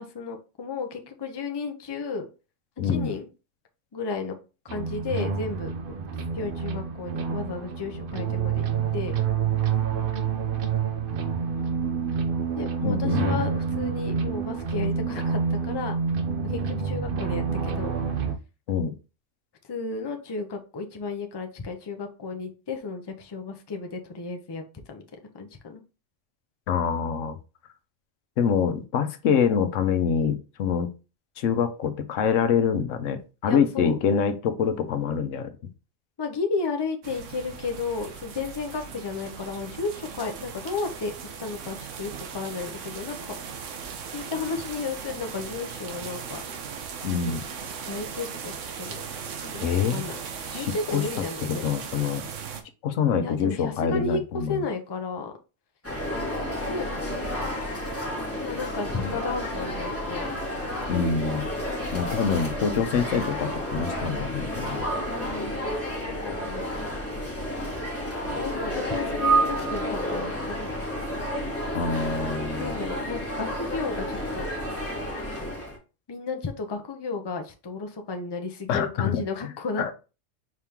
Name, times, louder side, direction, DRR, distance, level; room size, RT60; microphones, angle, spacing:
voice 1, 0.0-2.3 2.8-3.3 3.9-4.3 4.6-5.7 6.3-8.7 8.9-9.1 12.6-15.9 16.5-17.9 19.7-24.6 24.9-25.0 25.3-25.8 33.5-34.0 36.2-41.1 41.4-43.4 44.1-46.4 47.2-47.4 47.8-49.0 49.4-51.6 53.2-54.2 54.5-55.3 56.6-57.6 58.4-60.3 65.0-65.6 66.1-66.7 68.3-70.7 72.6-74.5 76.1-79.9, left 4 dB, 25° left, 4 dB, 0.6 m, -33 dB
voice 2, 2.8-3.1 12.8-13.4 18.7-18.9 26.7-27.4 28.4-30.9 31.4-35.5 47.0-47.4 49.6-50.0 50.5-52.2 52.8-54.6 58.9-59.1 60.9-61.5 61.9-64.8 71.7-72.7 78.7-79.2 79.8-79.9, left 6 dB, 85° left, 9 dB, 1.0 m, -25 dB
sound 1, 4.7-18.4, right 6 dB, 55° right, 0.7 m, -28 dB
sound 2, 37.0-52.6, right 6 dB, 85° right, 1.1 m, -38 dB
sound 3, 55.8-75.8, equal, 10° left, 1.6 m, -30 dB
4.9 x 3.5 x 2.9 m, 0.32 s
omnidirectional pair, 1.3 m